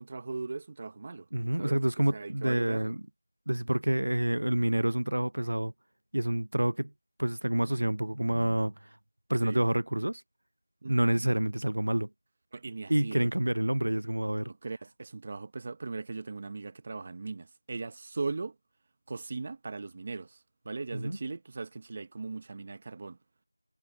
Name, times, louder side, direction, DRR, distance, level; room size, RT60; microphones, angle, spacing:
voice 1, 0.0-1.3 1.6-1.8 2.1-2.9 9.4-9.7 10.8-11.3 12.5-13.3 14.5-18.5 19.1-20.4 20.6-23.2, right 3 dB, 15° right, 1.2 m, -39 dB
voice 2, 1.3-3.0 3.5-5.7 6.1-6.9 7.2-9.0 9.3-10.2 10.9-12.1 12.9-14.5 20.9-21.2, right 1 dB, 65° right, 0.7 m, -28 dB
figure-of-eight pair, 180°, 0 cm